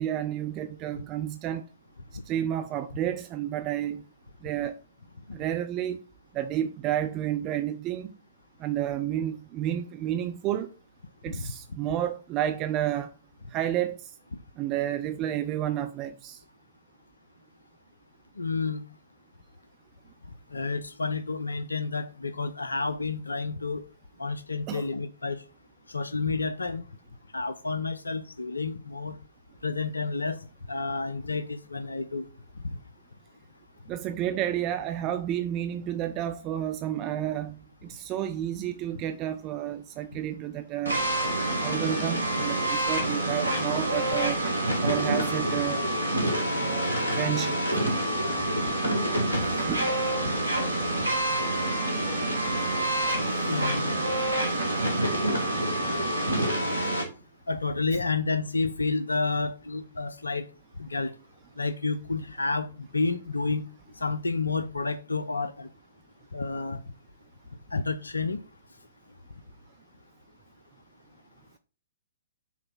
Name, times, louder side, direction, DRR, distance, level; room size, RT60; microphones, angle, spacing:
voice 1, 0.0-1.6 2.3-4.0 4.4-4.8 5.3-6.0 6.3-8.1 8.6-10.7 11.2-13.1 13.5-14.1 14.6-16.4 24.7-24.8 33.9-41.0 41.6-44.4 44.8-45.8 46.6-47.6 49.4-49.9, right 11 dB, 30° right, 0.4 m, -31 dB
voice 2, 18.4-18.8 20.5-23.8 24.2-25.4 25.9-26.9 27.3-29.2 29.6-30.4 30.7-32.3 32.6-32.8 49.5-49.7 50.2-50.4 53.5-54.0 57.5-60.4 60.8-61.1 61.6-63.6 64.0-65.7 66.3-66.8 67.7-68.4, left 3 dB, 75° left, 0.5 m, -30 dB
sound 1, 40.9-57.0, right 1 dB, 85° right, 2.1 m, -27 dB
5.9 x 3.9 x 5.8 m
figure-of-eight pair, 115°, 0 cm